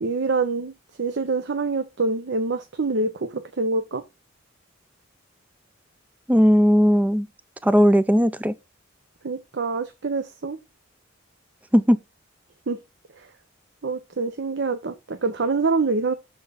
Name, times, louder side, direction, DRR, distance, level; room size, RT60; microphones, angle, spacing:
voice 1, 0.0-0.7 1.0-4.0 9.2-10.6 12.7-12.8 13.2-13.3 13.8-16.1, right 3 dB, 60° right, 0.7 m, -25 dB
voice 2, 6.3-7.3 7.6-8.5 11.7-12.0, equal, 5° right, 0.4 m, -17 dB
6.8 x 4.5 x 4.7 m
head